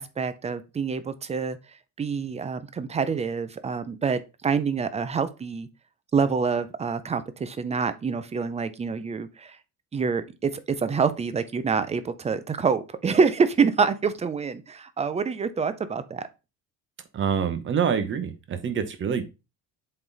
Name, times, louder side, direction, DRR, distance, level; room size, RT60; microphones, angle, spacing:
voice 1, 0.0-1.6 2.0-5.7 6.1-9.6 9.9-16.2, right 5 dB, 20° right, 13 dB, 0.5 m, -26 dB
voice 2, 17.1-19.2, right 7 dB, 35° right, 10 dB, 0.9 m, -26 dB
7.6 x 3.9 x 4.0 m, 0.27 s
cardioid pair, 160°, 35 cm